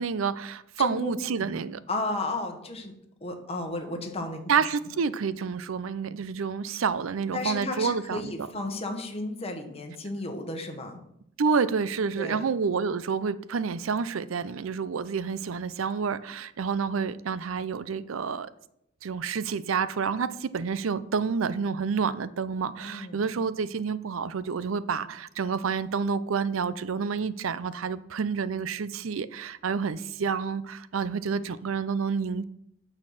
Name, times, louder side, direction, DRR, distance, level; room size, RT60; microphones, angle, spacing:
voice 1, 0.0-1.8 4.5-8.3 11.4-18.5 19.0-32.4, right 5 dB, 80° right, 0.5 m, -29 dB
voice 2, 0.8-1.1 1.4-1.5 1.9-2.9 3.2-4.7 6.0-6.2 7.3-11.0 12.2-12.4 22.8-23.2, left 2 dB, 30° left, 1.4 m, -34 dB
8.9 x 6.5 x 5.6 m
head